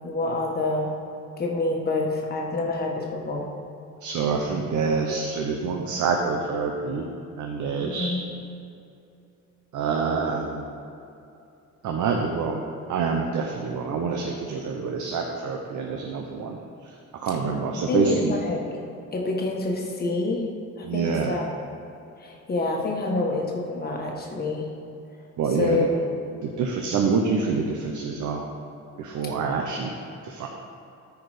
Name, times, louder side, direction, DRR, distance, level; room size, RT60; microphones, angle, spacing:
voice 1, 0.0-0.9 1.4-3.5 7.8-8.2 17.9-18.7 19.1-20.4 20.8-21.5 22.2-24.7 25.5-26.0, left 2 dB, 30° left, -1 dB, 1.3 m, -27 dB
voice 2, 4.0-7.1 7.4-8.1 9.7-10.7 11.8-12.6 12.9-16.6 16.8-16.9 17.2-18.4 20.8-21.4 25.4-25.9 26.4-28.4 29.0-29.9 30.2-30.5, right 5 dB, 80° right, 2 dB, 0.9 m, -26 dB
13.0 x 4.8 x 4.9 m, 2.7 s
wide cardioid pair, 180°, 30 cm